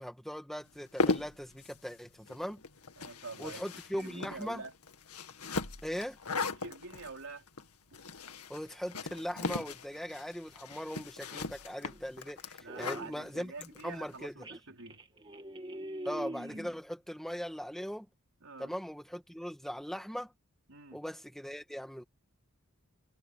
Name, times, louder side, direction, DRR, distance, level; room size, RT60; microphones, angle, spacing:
voice 1, 0.0-2.6 3.4-4.6 5.8-6.2 8.5-13.5 13.8-14.3 16.1-18.1 18.6-20.3 20.9-22.0, equal, ahead, 2.1 m, -40 dB
sound 1, 0.7-14.2, left 3 dB, 85° left, 2.0 m, -38 dB
voice 2, 3.0-3.6 3.9-4.7 6.4-7.5 12.6-15.0 18.4-18.7 20.7-21.0, right 3 dB, 65° right, 4.2 m, -46 dB
sound 2, 11.8-12.2 12.7-13.2 13.9-14.0 14.4-16.8, right 1 dB, 20° right, 2.2 m, -43 dB
head